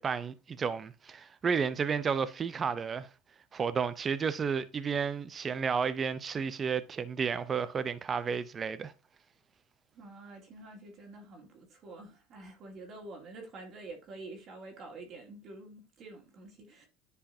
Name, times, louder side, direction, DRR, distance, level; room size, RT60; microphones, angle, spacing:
voice 1, 0.0-3.1 3.5-8.9, right 6 dB, 30° right, 0.7 m, -32 dB
voice 2, 10.0-16.9, right 2 dB, 50° right, 2.4 m, -48 dB
10.5 x 4.7 x 2.8 m
supercardioid pair, 105°, 0 cm